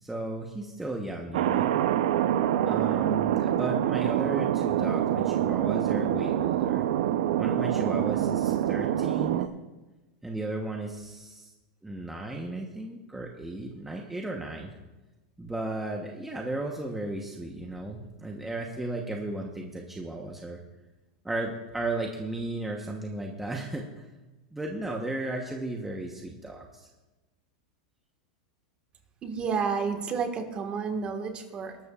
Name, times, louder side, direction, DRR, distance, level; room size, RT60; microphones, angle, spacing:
voice 1, 0.0-1.7 2.6-6.9 7.4-9.5 10.2-11.5 11.8-14.7 15.4-20.6 21.2-24.1 24.5-26.9, right 2 dB, 5° right, 0 dB, 1.0 m, -35 dB
Thunder, 1.3-9.5, right 11 dB, 75° right, 0.6 m, -26 dB
voice 2, 29.2-31.8, right 5 dB, 25° right, 5 dB, 1.6 m, -30 dB
20.5 x 12.5 x 2.4 m, 1.1 s
supercardioid pair, 140°, 4 cm